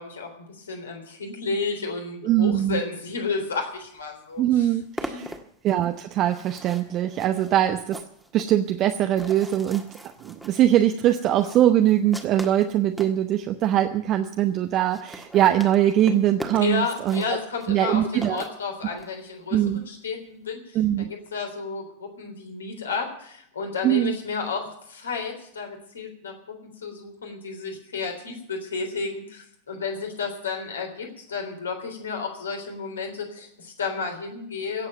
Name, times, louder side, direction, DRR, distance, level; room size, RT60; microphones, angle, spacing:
voice 1, 0.0-4.8 5.1-5.2 16.5-34.9, left 4 dB, 70° left, 3 dB, 3.6 m, -32 dB
voice 2, 2.2-2.8 4.4-5.3 5.6-8.0 8.3-9.9 10.2-17.2 17.7-18.4 18.9-19.0 19.5-19.8 20.7-21.1 23.8-24.1, right 12 dB, 35° right, 7 dB, 0.8 m, -22 dB
sound 1, 4.0-4.1 4.3-13.2 13.8-13.9 14.1-14.2 14.4-14.5 14.7-19.1, right 1 dB, ahead, 1.6 m, -41 dB
17.0 x 7.7 x 9.1 m, 0.70 s
figure-of-eight pair, 90°, 0 cm